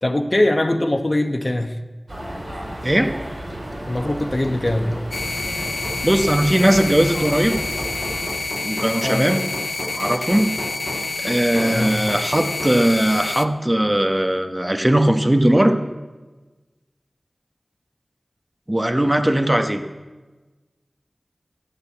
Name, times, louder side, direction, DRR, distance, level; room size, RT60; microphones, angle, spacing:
voice 1, 0.0-1.8 3.8-5.1 9.0-9.3 11.5-12.0, left 1 dB, 35° left, 1.0 m, -22 dB
sound 1, 2.1-8.3, right 1 dB, 65° right, 4.2 m, -33 dB
Hammer, 3.3-12.9, equal, 15° left, 1.7 m, -35 dB
sound 2, 5.1-13.5, left 3 dB, 75° left, 0.4 m, -28 dB
voice 2, 6.0-7.6 8.6-9.4 9.9-10.6 11.2-15.8 18.7-19.8, right 1 dB, 20° right, 0.9 m, -19 dB
11.0 x 8.2 x 8.3 m
wide cardioid pair, 40°, 0 cm